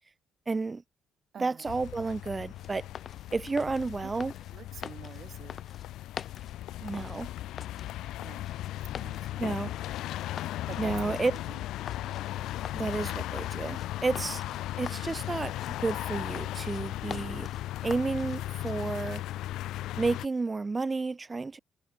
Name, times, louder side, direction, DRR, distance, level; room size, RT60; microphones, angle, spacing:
voice 1, 0.5-0.8 1.4-2.9 3.3-4.3 6.8-7.3 9.4-9.7 10.8-11.3 12.7-14.4 14.8-17.5 17.8-19.2 20.0-21.6, right 3 dB, 25° right, 1.2 m, -31 dB
voice 2, 1.3-1.6 4.5-5.6 8.2-8.5 9.0-9.5 10.7-11.6, right 8 dB, 55° right, 3.8 m, -47 dB
sound 1, 1.7-20.3, left 14 dB, 85° left, 0.5 m, -37 dB
sound 2, 2.5-19.2, left 7 dB, 50° left, 5.3 m, -47 dB
cardioid pair, 90°, 0 cm